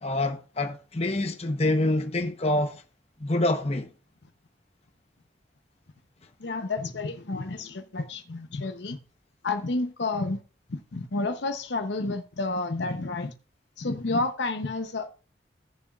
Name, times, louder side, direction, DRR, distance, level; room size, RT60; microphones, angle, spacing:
voice 1, 0.0-2.8 3.2-3.9, left 2 dB, 35° left, 0.9 m, -26 dB
voice 2, 6.4-9.0 9.4-10.4 10.7-13.3 13.8-15.1, left 3 dB, 70° left, 0.8 m, -30 dB
16.5 x 7.0 x 2.4 m
head